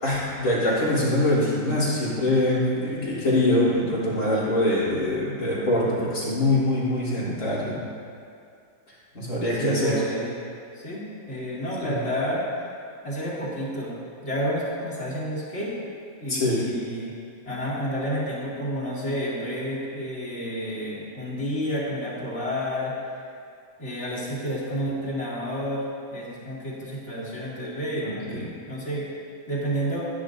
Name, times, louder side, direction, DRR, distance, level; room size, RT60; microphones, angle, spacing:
voice 1, 0.0-7.8 9.1-10.0 11.8-12.0 16.3-16.6 28.0-28.4, left 1 dB, 80° left, -9 dB, 3.8 m, -24 dB
voice 2, 9.5-10.4 10.7-12.4 13.0-13.9 14.2-15.7 16.2-17.1 17.4-22.9 23.8-29.1 29.5-30.1, equal, 50° left, -7 dB, 2.8 m, -30 dB
18.0 x 9.5 x 2.6 m, 2.4 s
omnidirectional pair, 1.6 m